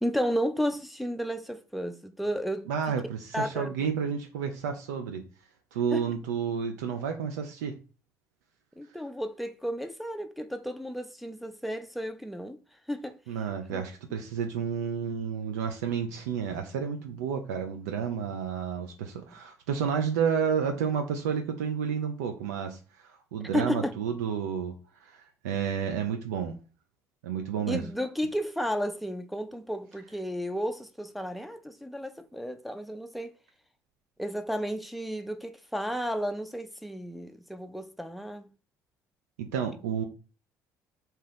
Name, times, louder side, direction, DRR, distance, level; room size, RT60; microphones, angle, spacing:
voice 1, 0.0-2.7 3.3-3.9 5.9-6.0 8.8-12.6 12.9-13.2 13.7-13.8 23.5-24.0 27.7-33.3 34.2-38.5, equal, ahead, 0.4 m, -33 dB
voice 2, 2.7-5.2 5.7-7.7 13.3-24.7 25.0-25.2 25.4-26.5 27.2-27.9 39.4-40.0, right 7 dB, 80° right, 0.4 m, -31 dB
2.8 x 2.3 x 3.3 m
hypercardioid pair, 55°, 9 cm